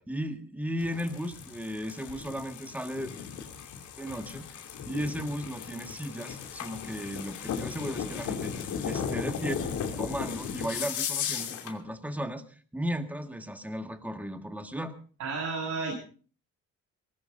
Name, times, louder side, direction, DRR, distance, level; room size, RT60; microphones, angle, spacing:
voice 1, 0.1-3.1 4.0-4.4 4.9-8.5 8.8-9.6 10.0-15.0, equal, 5° right, 6 dB, 1.8 m, -35 dB
sound 1, 0.8-11.8, left 7 dB, 80° left, 2.9 m, -36 dB
voice 2, 15.2-15.9, right 4 dB, 80° right, -2 dB, 7.7 m, -32 dB
23.0 x 19.5 x 2.7 m, 0.41 s
cardioid pair, 90°, 30 cm